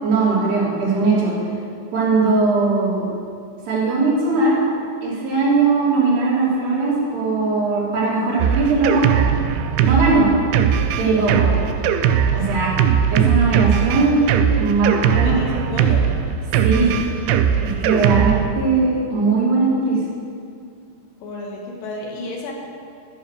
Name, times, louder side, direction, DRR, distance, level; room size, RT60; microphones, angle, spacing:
voice 1, 0.0-1.3 1.9-3.0 3.7-4.6 5.0-9.2 9.8-10.3 11.0-11.7 12.3-12.7 13.1-14.2 14.6-15.3 16.6-16.9 17.6-20.0, right 3 dB, 65° right, -7 dB, 4.6 m, -19 dB
Drum kit, 8.4-18.5, right 8 dB, 85° right, 2.2 m, -19 dB
voice 2, 15.1-16.2 18.1-18.3 21.2-22.5, left 1 dB, 65° left, -1 dB, 2.7 m, -30 dB
13.0 x 5.9 x 6.5 m, 2.3 s
omnidirectional pair, 5.0 m